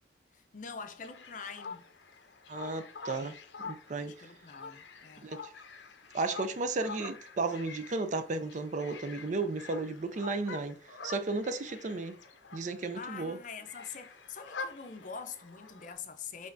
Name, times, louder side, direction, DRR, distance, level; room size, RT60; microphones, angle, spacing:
voice 1, 0.3-1.9 4.0-5.3 12.9-16.5, left 5 dB, 45° left, 0.5 m, -44 dB
sound 1, 1.0-15.9, left 4 dB, 80° left, 0.7 m, -47 dB
voice 2, 2.5-3.4 3.6-4.3 5.2-5.5 6.1-12.2 12.5-13.4, right 3 dB, 40° right, 0.4 m, -34 dB
5.1 x 3.5 x 2.6 m
head